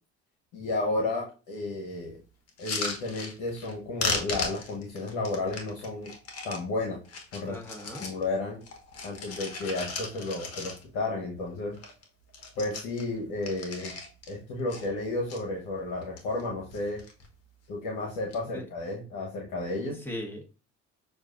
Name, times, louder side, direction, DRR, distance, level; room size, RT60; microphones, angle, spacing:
voice 1, 0.5-2.2 2.6-6.1 6.4-7.0 7.3-7.6 8.0-8.6 9.0-11.8 12.6-14.0 14.3-17.0 17.7-20.0, left 2 dB, 70° left, -2 dB, 1.1 m, -32 dB
sound 1, 2.5-3.7 4.0-6.6 7.1-8.2 8.6-11.1 11.4-11.5 11.7-12.0 12.3-14.3 14.7-15.4 15.9-16.4 16.7-17.3 18.1-18.4, left 4 dB, 50° left, 1.2 m, -36 dB
voice 2, 7.5-8.0 18.5-18.6 19.9-20.5, left 1 dB, 5° left, 0 dB, 1.2 m, -39 dB
6.3 x 2.4 x 2.5 m, 0.33 s
supercardioid pair, 75°, 31 cm